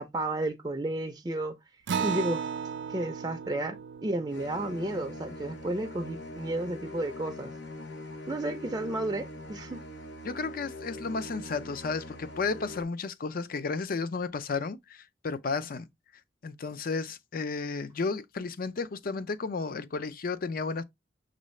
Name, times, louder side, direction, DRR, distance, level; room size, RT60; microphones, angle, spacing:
voice 1, 0.0-1.6 2.0-2.4 2.9-7.5 8.3-9.8, right 1 dB, 20° right, 0.5 m, -32 dB
Acoustic guitar, 1.9-6.8, right 6 dB, 80° right, 0.4 m, -36 dB
sound 1, 4.3-12.8, left 1 dB, 90° left, 1.0 m, -42 dB
voice 2, 10.2-15.9 16.4-20.8, left 4 dB, 55° left, 0.5 m, -33 dB
6.3 x 2.6 x 3.1 m
head